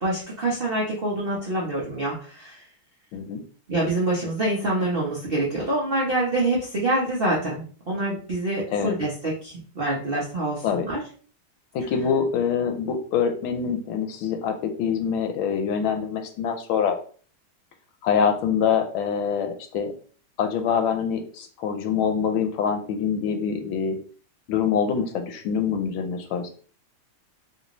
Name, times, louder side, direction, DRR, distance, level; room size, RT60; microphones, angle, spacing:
voice 1, 0.0-2.6 3.7-11.0, right 2 dB, 65° right, -5 dB, 0.5 m, -26 dB
voice 2, 11.7-17.0 18.0-19.9 20.4-24.0 24.5-26.5, left 7 dB, 80° left, 6 dB, 1.4 m, -25 dB
3.5 x 2.6 x 2.9 m, 0.42 s
omnidirectional pair, 2.3 m